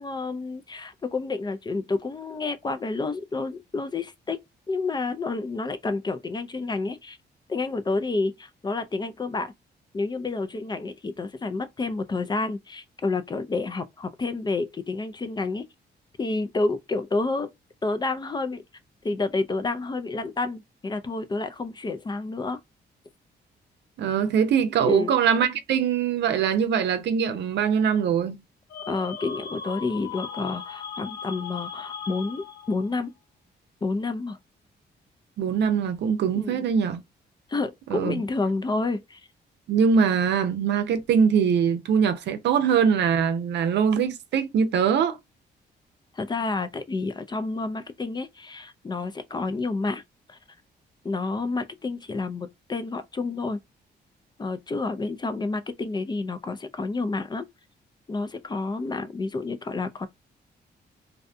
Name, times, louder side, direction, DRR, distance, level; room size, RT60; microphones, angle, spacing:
voice 1, 0.0-4.4 4.7-7.2 7.5-9.5 9.9-15.7 16.2-17.5 17.8-18.6 19.0-22.6 24.8-25.2 28.9-33.1 33.8-34.4 36.3-36.7 37.5-39.2 46.1-50.0 50.3-50.4 51.0-53.6 54.4-57.5 58.1-60.1, left 3 dB, 25° left, 0.4 m, -29 dB
voice 2, 24.0-28.4 35.4-37.0 37.9-38.2 39.7-45.2, right 7 dB, 75° right, 0.6 m, -22 dB
sound 1, 28.7-32.9, left 7 dB, 75° left, 0.8 m, -38 dB
2.6 x 2.2 x 2.5 m
cardioid pair, 80°, 18 cm